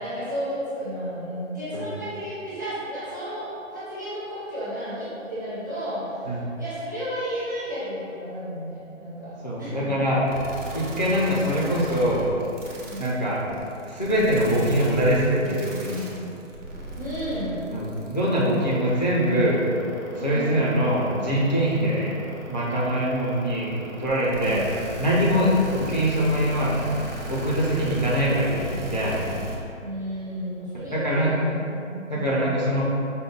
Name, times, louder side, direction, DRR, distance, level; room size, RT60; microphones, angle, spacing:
voice 1, 0.0-10.0 12.8-13.0 16.9-17.6 18.6-18.8 20.1-20.7 21.6-21.9 24.4-24.9 25.2-25.6 29.8-32.5, equal, 15° right, -14 dB, 0.7 m, -33 dB
voice 2, 9.4-10.2 10.7-12.2 13.0-13.4 13.9-16.0 17.7-19.6 20.2-22.1 22.5-24.6 25.0-25.5 25.9-29.2 30.9-31.3 32.1-32.8, equal, 35° left, -7 dB, 0.4 m, -23 dB
sound 1, 10.3-29.6, right 1 dB, 65° right, 1.0 m, -36 dB
5.1 x 2.1 x 3.8 m, 2.7 s
hypercardioid pair, 170°, 39 cm